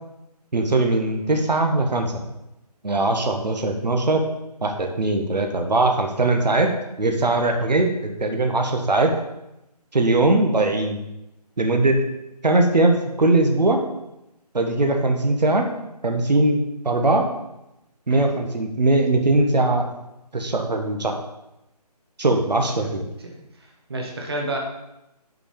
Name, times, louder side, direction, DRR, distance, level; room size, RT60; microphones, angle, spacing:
voice 1, 0.5-2.1 2.8-4.2 4.6-6.7 7.0-9.1 9.9-11.0 11.6-12.0 12.4-13.8 14.5-15.7 16.0-16.6 16.8-17.3 18.1-19.8 20.3-21.2 22.2-23.1, right 2 dB, 85° right, 4 dB, 1.3 m, -20 dB
voice 2, 23.2-24.6, right 2 dB, 40° right, 1 dB, 1.2 m, -31 dB
6.2 x 5.2 x 5.2 m, 0.90 s
figure-of-eight pair, 170°, 21 cm